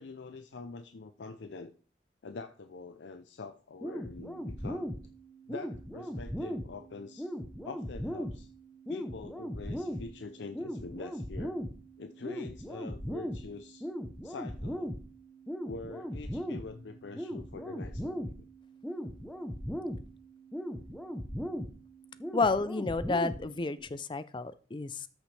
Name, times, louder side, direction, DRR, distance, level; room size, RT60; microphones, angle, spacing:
voice 1, 0.0-1.7 2.2-4.9 5.5-7.3 7.6-8.5 8.9-11.6 12.0-13.9 14.2-14.9 15.6-18.3, left 3 dB, 80° left, 8 dB, 0.5 m, -45 dB
sound 1, 3.8-23.8, equal, 5° left, 0.8 m, -39 dB
voice 2, 22.3-25.1, left 3 dB, 25° left, 14 dB, 0.4 m, -31 dB
13.0 x 6.3 x 3.3 m, 0.40 s
head